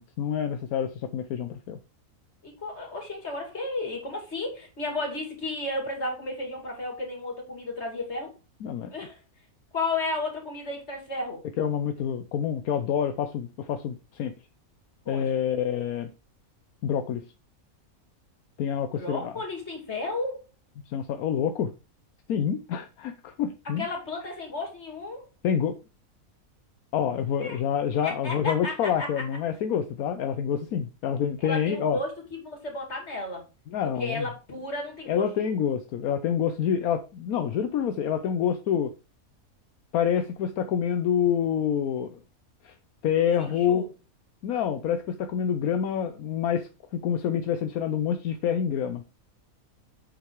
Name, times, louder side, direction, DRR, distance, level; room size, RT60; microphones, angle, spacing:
voice 1, 0.0-1.8 8.6-8.9 11.6-14.3 15.1-16.1 16.8-17.2 18.6-19.3 20.9-21.7 22.3-23.8 25.4-25.8 26.9-32.0 33.7-34.3 35.1-38.9 39.9-42.2 42.6-42.7 43.0-43.8 44.4-49.0, left 8 dB, 80° left, 1.2 m, -27 dB
voice 2, 2.4-8.3 8.9-9.2 9.7-11.4 15.0-15.4 18.9-20.4 23.8-25.3 27.4-27.6 28.0-29.1 31.4-33.4 33.8-35.5 43.4-43.9, left 2 dB, 50° left, 3.0 m, -33 dB
7.7 x 5.2 x 4.7 m
omnidirectional pair, 1.5 m